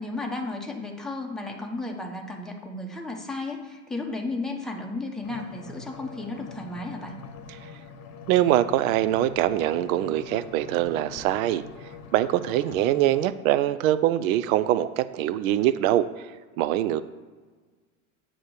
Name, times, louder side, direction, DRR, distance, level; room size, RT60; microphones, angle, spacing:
voice 1, 0.0-7.2, left 2 dB, ahead, 1 dB, 0.9 m, -34 dB
sound 1, 5.2-13.3, left 5 dB, 40° left, 1.0 m, -44 dB
voice 2, 8.3-11.6 12.1-16.1 16.6-17.0, right 13 dB, 70° right, 13 dB, 0.5 m, -23 dB
8.1 x 3.0 x 6.3 m, 1.4 s
hypercardioid pair, 110°, 43 cm